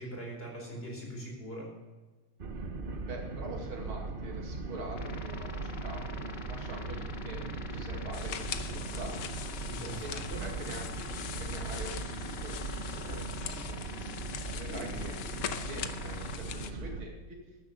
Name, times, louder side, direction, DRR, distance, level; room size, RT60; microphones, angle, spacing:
voice 1, 0.0-1.7 9.7-10.4 14.7-15.2, right 1 dB, 25° left, -1 dB, 4.4 m, -42 dB
sound 1, 2.4-17.0, right 3 dB, 40° right, 0.8 m, -39 dB
voice 2, 3.0-9.3 10.0-10.1 10.4-14.2 14.5-15.2 15.7-17.4, right 2 dB, 80° right, 0 dB, 3.3 m, -45 dB
sound 2, 5.0-16.4, left 5 dB, 60° left, 1.6 m, -45 dB
sound 3, 8.1-16.7, left 9 dB, 80° left, 1.7 m, -42 dB
13.0 x 10.5 x 6.5 m, 1.2 s
omnidirectional pair, 2.3 m